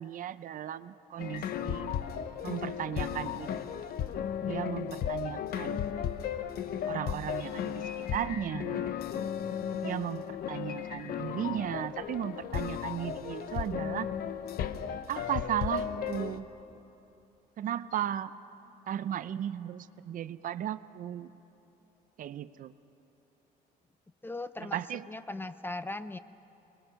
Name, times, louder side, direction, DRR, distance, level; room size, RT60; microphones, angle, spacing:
voice 1, 0.0-1.9 2.4-3.8 4.4-5.9 6.9-9.0 9.8-14.1 15.1-16.5 17.6-18.3 18.9-21.3 22.2-22.7 24.6-25.1, right 10 dB, 55° right, 14 dB, 0.6 m, -36 dB
sound 1, 1.2-16.4, left 8 dB, 65° left, 0.9 m, -35 dB
voice 2, 24.2-26.2, left 2 dB, 10° left, 13 dB, 0.6 m, -39 dB
25.5 x 21.0 x 6.4 m, 3.0 s
cardioid pair, 110°, 17 cm